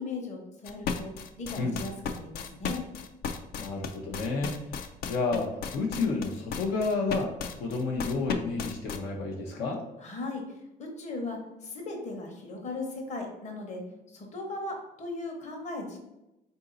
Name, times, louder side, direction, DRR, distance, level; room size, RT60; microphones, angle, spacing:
voice 1, 0.0-2.8 10.0-13.8 14.1-16.0, left 2 dB, 45° left, 1 dB, 1.0 m, -38 dB
sound 1, 0.7-9.0, left 6 dB, 65° left, 0.4 m, -34 dB
voice 2, 3.6-4.6 5.1-9.8, left 3 dB, 90° left, -1 dB, 0.8 m, -30 dB
3.9 x 2.7 x 3.9 m, 0.92 s
cardioid pair, 110°, 17 cm